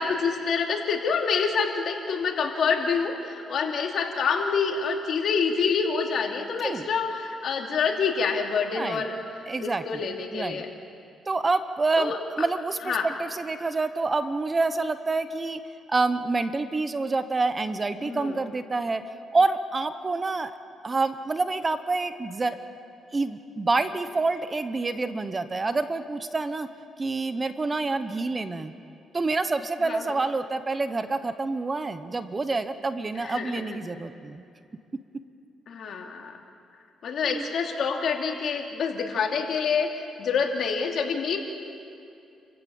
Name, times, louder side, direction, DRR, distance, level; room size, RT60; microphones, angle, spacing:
voice 1, 0.0-9.2 9.6-10.7 12.0-12.2 12.9-13.1 18.0-18.3 29.9-30.0 33.2-33.8 35.7-36.4 37.0-39.9 40.2-41.4, left 5 dB, 65° left, 2 dB, 2.7 m, -27 dB
voice 2, 8.7-9.0 9.5-10.6 11.3-15.6 15.9-20.5 20.8-22.6 23.1-26.7 27.0-28.7 29.1-34.4 37.2-37.5, right 3 dB, 30° right, 11 dB, 1.1 m, -27 dB
29.5 x 16.0 x 7.2 m, 2.6 s
cardioid pair, 90°, 0 cm